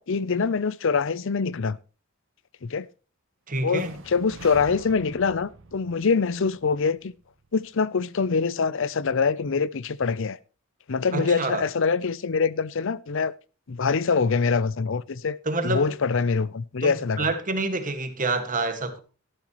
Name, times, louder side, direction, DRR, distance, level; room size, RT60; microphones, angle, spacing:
voice 1, 0.0-1.8 2.6-2.9 3.6-7.1 7.5-10.4 10.9-13.3 13.7-15.4 15.6-17.3, left 5 dB, 65° left, 0.6 m, -24 dB
voice 2, 3.5-4.0 11.1-11.6 15.5-15.9 16.8-19.0, right 2 dB, 40° right, 1.8 m, -27 dB
sound 1, 3.7-7.7, right 3 dB, 65° right, 1.1 m, -46 dB
13.0 x 12.0 x 3.0 m
head